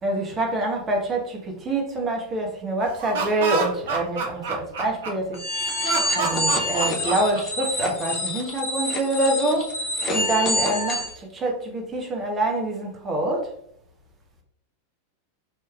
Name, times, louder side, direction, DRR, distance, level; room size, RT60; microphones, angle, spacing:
voice 1, 0.0-5.4 6.2-9.7 10.1-11.0 11.4-13.5, right 2 dB, 25° right, 0 dB, 1.0 m, -26 dB
Laughter, 2.9-5.4 5.8-7.9, right 4 dB, 60° right, 0.7 m, -28 dB
sound 1, 5.3-11.1, left 1 dB, 30° left, 0.8 m, -27 dB
4.6 x 3.0 x 2.4 m, 0.69 s
figure-of-eight pair, 90°, 0 cm